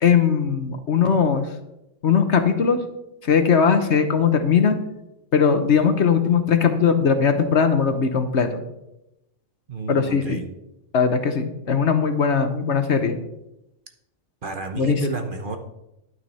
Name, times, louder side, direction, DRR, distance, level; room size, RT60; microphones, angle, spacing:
voice 1, 0.0-1.5 2.0-2.8 3.2-4.8 5.3-8.6 9.9-10.4 10.9-13.2 14.8-15.0, left 6 dB, 60° left, 8 dB, 1.2 m, -19 dB
voice 2, 9.7-10.5 14.4-15.6, right 3 dB, 45° right, 6 dB, 1.0 m, -30 dB
11.0 x 9.3 x 4.2 m, 0.88 s
omnidirectional pair, 1.3 m